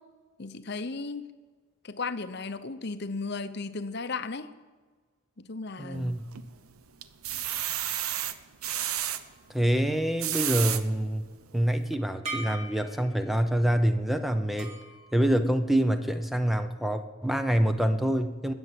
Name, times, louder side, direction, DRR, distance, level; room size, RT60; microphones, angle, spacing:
voice 1, 0.4-1.2 1.8-4.5 5.4-6.1, left 4 dB, 50° left, 12 dB, 0.8 m, -35 dB
voice 2, 5.8-6.2 9.5-11.2 11.5-14.7 15.1-18.5, right 1 dB, ahead, 8 dB, 0.7 m, -26 dB
sound 1, 5.9-6.5 7.0-9.2 10.0-10.8 11.4-11.5 11.9-12.0, right 11 dB, 85° right, 0.8 m, -31 dB
sound 2, 8.6-10.3 12.2-13.5 14.6-16.1, right 2 dB, 30° right, 1.8 m, -43 dB
20.5 x 8.1 x 7.5 m, 1.4 s
head